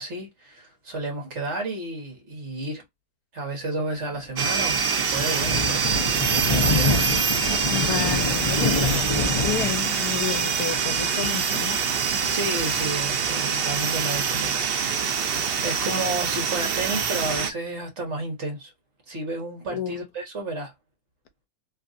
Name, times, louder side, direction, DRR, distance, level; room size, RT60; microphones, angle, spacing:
voice 1, 0.0-2.8 3.3-5.9 6.1-7.0 8.8-9.3 12.3-18.7 19.1-20.7, right 2 dB, 50° right, 1.5 m, -32 dB
Thunder, 4.1-13.2, left 3 dB, 40° left, 0.4 m, -28 dB
sound 1, 4.4-17.5, right 6 dB, 70° right, 0.5 m, -25 dB
voice 2, 7.7-11.8 19.7-20.0, left 9 dB, 75° left, 1.2 m, -31 dB
3.2 x 2.4 x 2.5 m
omnidirectional pair, 1.6 m